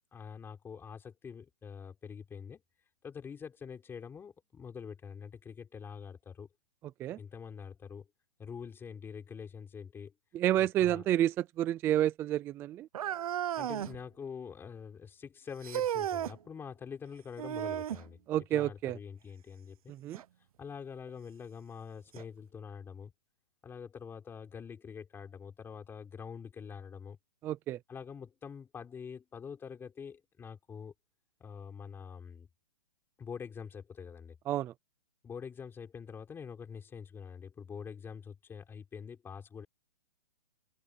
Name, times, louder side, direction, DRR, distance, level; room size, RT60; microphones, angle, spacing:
voice 1, 0.1-2.6 3.0-6.5 7.2-8.1 8.4-10.1 10.5-11.1 13.6-18.2 18.5-19.9 20.6-23.1 23.6-27.2 27.9-30.9 31.4-32.5 33.2-34.4 35.2-39.7, left 6 dB, 10° left, 4.4 m, -45 dB
voice 2, 10.3-12.9 18.3-19.0 19.9-20.2 27.4-27.8 34.5-34.7, right 12 dB, 10° right, 0.5 m, -29 dB
sound 1, 12.9-14.0 15.6-16.4 17.4-18.1 20.1-20.2 21.1-21.2 22.2-22.3, right 11 dB, 60° right, 0.8 m, -34 dB
hypercardioid pair, 160°, 21 cm